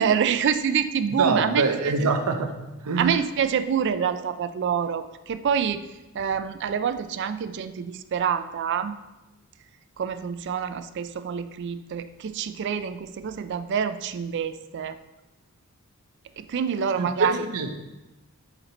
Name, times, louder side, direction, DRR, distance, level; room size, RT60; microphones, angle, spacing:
voice 1, 0.0-1.6 3.0-5.8 6.1-9.0 10.0-15.0 16.4-17.3, right 7 dB, 50° right, 11 dB, 0.3 m, -26 dB
voice 2, 1.1-3.2 17.0-17.7, right 4 dB, 85° right, 5 dB, 0.7 m, -25 dB
5.8 x 3.9 x 4.0 m, 1.0 s
head